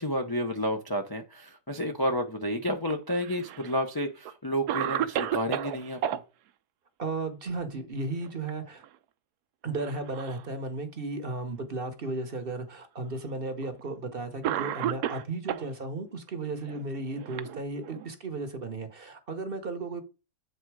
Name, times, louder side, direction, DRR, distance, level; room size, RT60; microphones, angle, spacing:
voice 1, 0.0-6.0, equal, 30° left, 0.4 m, -30 dB
Cough, 2.9-3.7 4.3-4.4 4.7-6.2 8.1-8.5 8.8-9.0 9.8-10.5 11.3-11.4 12.4-12.5 13.6-13.8 14.4-15.7 16.7-18.1, right 11 dB, 75° right, 1.1 m, -32 dB
voice 2, 7.0-8.8 9.6-20.0, right 3 dB, 40° right, 0.9 m, -35 dB
7.9 x 3.8 x 4.6 m
omnidirectional pair, 1.8 m